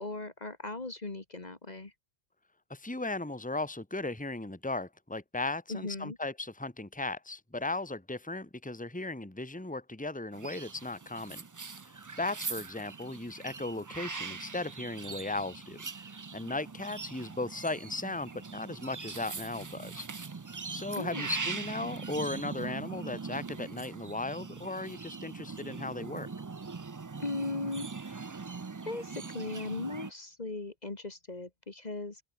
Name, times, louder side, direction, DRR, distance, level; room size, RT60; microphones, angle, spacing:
voice 1, 0.0-1.9 5.7-6.2 21.0-21.3 27.2-28.3 28.9-32.2, left 3 dB, 40° left, 1.9 m, -38 dB
voice 2, 2.7-11.4 11.8-16.1 16.3-20.1 20.7-26.3, left 2 dB, 10° left, 1.8 m, -37 dB
sound 1, 10.3-30.1, right 4 dB, 30° right, 0.3 m, -41 dB
open air
omnidirectional pair, 1.1 m